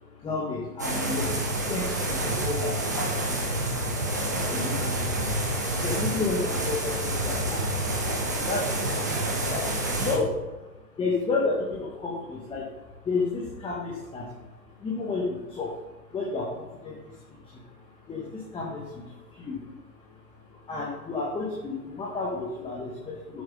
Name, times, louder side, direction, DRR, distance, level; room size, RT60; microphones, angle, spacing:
voice 1, 0.0-9.7 9.9-10.6 10.9-14.4 14.8-15.8 16.1-19.7 20.4-23.4, left 3 dB, 10° left, -3 dB, 1.3 m, -32 dB
sound 1, 0.8-10.2, right 1 dB, 15° right, 0.3 m, -28 dB
9.4 x 7.7 x 3.7 m, 1.0 s
figure-of-eight pair, 120°, 48 cm